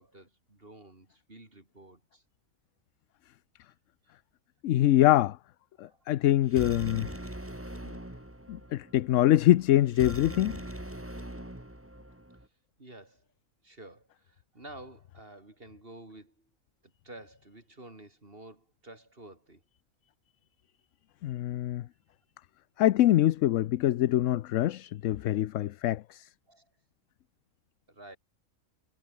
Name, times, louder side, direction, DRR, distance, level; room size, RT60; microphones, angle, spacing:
voice 1, 0.0-2.2 4.0-4.1 5.8-6.3 12.8-13.2 13.6-16.5 17.0-19.6 21.7-21.9 25.2-25.4 26.5-26.7 27.9-28.2, right 2 dB, 40° right, 4.1 m, -51 dB
voice 2, 4.6-5.4 5.8-7.1 8.5-10.6 21.2-21.9 22.8-26.3, left 13 dB, 70° left, 0.9 m, -24 dB
sound 1, 6.4-12.5, right 1 dB, 10° right, 2.6 m, -42 dB
omnidirectional pair, 1.4 m